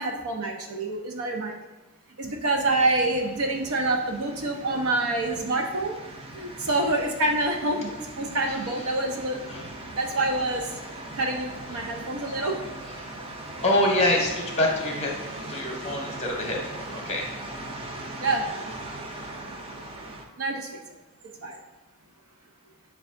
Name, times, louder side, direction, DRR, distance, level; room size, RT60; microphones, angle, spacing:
voice 1, 0.0-1.6 2.2-6.0 6.3-9.4 10.0-10.7 11.2-12.5 18.2-18.4 20.4-20.7 21.4-21.6, right 2 dB, 85° right, 1 dB, 0.6 m, -26 dB
sound 1, 2.5-20.3, right 2 dB, 25° right, 0.4 m, -39 dB
voice 2, 8.5-8.9 9.5-9.7 11.7-11.9 13.4-15.1 15.5-17.5, left 1 dB, 30° left, 1 dB, 0.7 m, -26 dB
6.7 x 2.3 x 2.5 m, 1.1 s
head